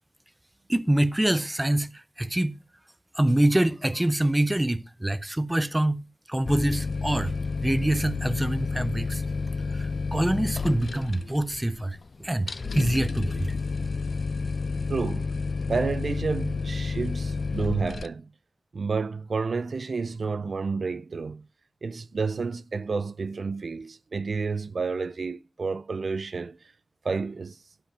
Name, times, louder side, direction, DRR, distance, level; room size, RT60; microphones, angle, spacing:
voice 1, 0.7-2.6 3.1-7.3 7.6-9.2 9.7-13.5, right 1 dB, 15° right, 0.6 m, -25 dB
sound 1, 6.4-18.1, left 4 dB, 65° left, 0.5 m, -30 dB
voice 2, 14.9-15.3 15.7-18.3 18.7-21.5 21.8-26.6 27.0-27.6, right 4 dB, 70° right, 0.6 m, -30 dB
12.0 x 5.2 x 6.0 m
wide cardioid pair, 100°, 0 cm